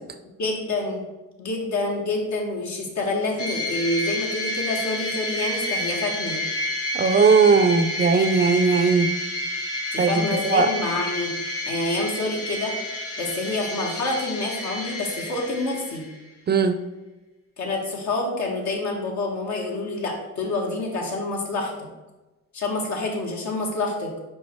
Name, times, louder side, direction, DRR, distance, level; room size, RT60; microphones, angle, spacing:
voice 1, 0.3-1.0 1.4-6.4 9.9-11.3 11.7-12.7 13.2-16.0 17.6-21.9 22.5-24.1, left 2 dB, 70° left, -1 dB, 1.8 m, -27 dB
sound 1, 3.4-16.2, left 1 dB, 50° left, 1.6 m, -30 dB
voice 2, 6.9-9.1 10.0-10.7 16.5-16.8, right 5 dB, 35° right, 9 dB, 0.5 m, -18 dB
5.4 x 5.0 x 4.5 m, 1.1 s
cardioid pair, 90°, 30 cm